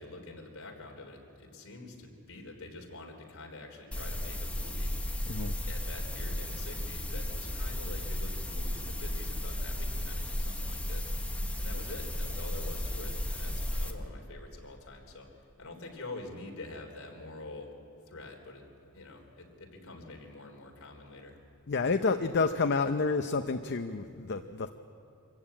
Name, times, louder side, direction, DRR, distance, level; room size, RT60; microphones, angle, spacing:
voice 1, 0.0-5.0 5.7-17.7 18.1-18.6 18.9-21.4, left 2 dB, 65° left, 1 dB, 3.5 m, -46 dB
sound 1, 3.9-13.9, left 1 dB, 5° left, 1.2 m, -34 dB
voice 2, 21.7-24.7, left 4 dB, 50° left, 8 dB, 0.6 m, -29 dB
25.5 x 14.5 x 8.7 m, 2.6 s
head